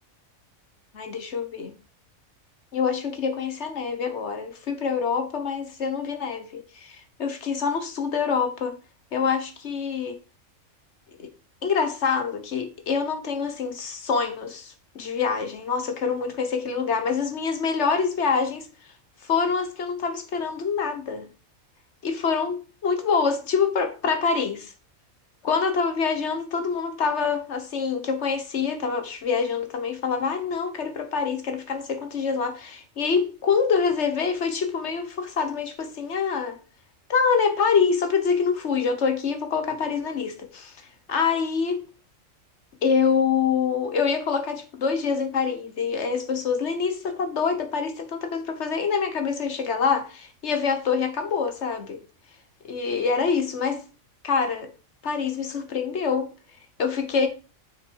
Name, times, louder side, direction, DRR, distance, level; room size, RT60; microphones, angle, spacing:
voice 1, 0.9-1.7 2.7-8.7 9.1-10.2 11.2-11.3 11.6-18.7 19.2-21.3 22.0-24.7 25.4-36.6 37.1-41.8 42.8-52.0 52.7-53.8 54.2-54.7 55.0-56.3 56.8-57.3, left 5 dB, 55° left, 1.5 m, -25 dB
6.8 x 6.2 x 4.7 m
omnidirectional pair, 1.4 m